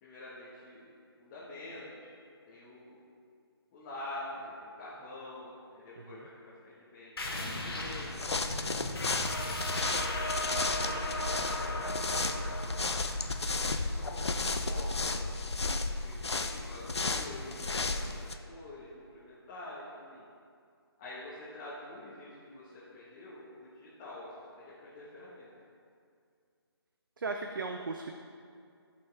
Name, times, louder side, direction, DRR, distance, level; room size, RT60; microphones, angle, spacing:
voice 1, 0.0-0.8 1.2-2.1 2.5-3.0 3.7-8.7 10.0-13.0 13.6-15.3 15.9-20.2 21.0-25.5, left 1 dB, 20° left, -8 dB, 1.3 m, -47 dB
sound 1, 7.2-16.4, left 1 dB, 65° left, 1.6 m, -37 dB
sound 2, 7.8-18.3, left 3 dB, 85° left, 0.7 m, -34 dB
voice 2, 27.2-28.1, right 3 dB, 50° right, 4 dB, 0.6 m, -37 dB
15.0 x 5.6 x 3.4 m, 2.3 s
figure-of-eight pair, 155°, 14 cm